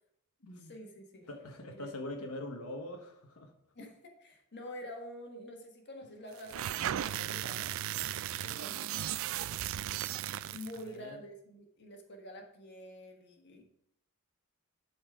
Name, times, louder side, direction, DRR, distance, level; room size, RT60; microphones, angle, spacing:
voice 1, 0.6-1.3 1.7-1.9 2.2-2.3 3.7-7.7 8.4-8.9 10.5-13.6, equal, 50° left, 3 dB, 1.5 m, -47 dB
voice 2, 1.3-3.5 10.8-11.2, left 1 dB, 85° left, 2 dB, 1.3 m, -43 dB
sound 1, 6.4-10.8, right 11 dB, 65° right, 0.3 m, -36 dB
11.5 x 4.3 x 4.8 m, 0.73 s
head